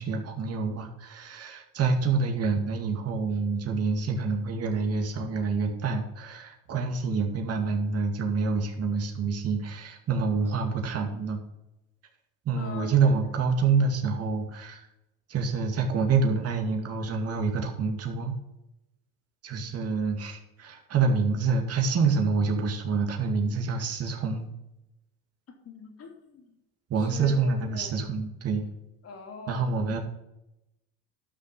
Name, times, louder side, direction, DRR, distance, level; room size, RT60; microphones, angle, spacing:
voice 1, 0.0-11.4 12.5-14.9 15.3-18.4 19.4-24.5 26.9-28.6 29.5-30.0, right 4 dB, 40° right, 2 dB, 2.2 m, -27 dB
voice 2, 12.5-13.1 25.6-26.6 27.0-28.0 29.0-29.8, left 5 dB, 40° left, 2 dB, 3.0 m, -43 dB
12.5 x 6.2 x 5.4 m, 0.90 s
supercardioid pair, 90°, 36 cm